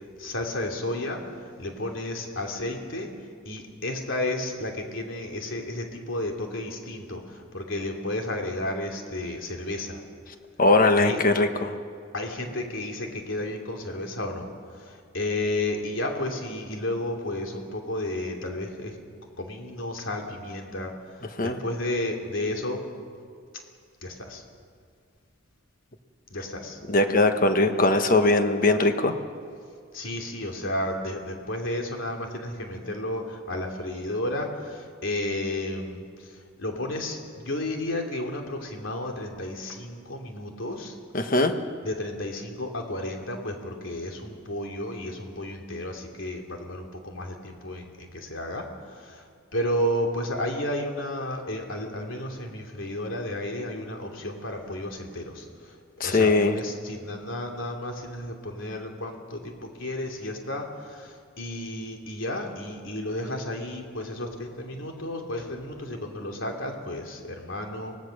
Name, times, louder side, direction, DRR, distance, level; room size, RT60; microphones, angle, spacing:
voice 1, 0.2-1.2 1.6-3.1 3.4-10.0 11.0-11.2 12.1-14.5 14.8-19.0 19.4-20.9 21.4-22.8 24.0-24.4 26.3-26.8 29.9-36.0 36.6-40.9 41.8-48.6 48.9-49.2 49.5-55.5 56.0-68.0, left 1 dB, 75° left, 2 dB, 3.0 m, -32 dB
voice 2, 10.6-11.7 21.4-21.6 26.9-29.1 41.1-41.5 56.0-56.5, left 2 dB, 45° left, 7 dB, 1.3 m, -20 dB
24.5 x 18.0 x 6.6 m, 2.2 s
head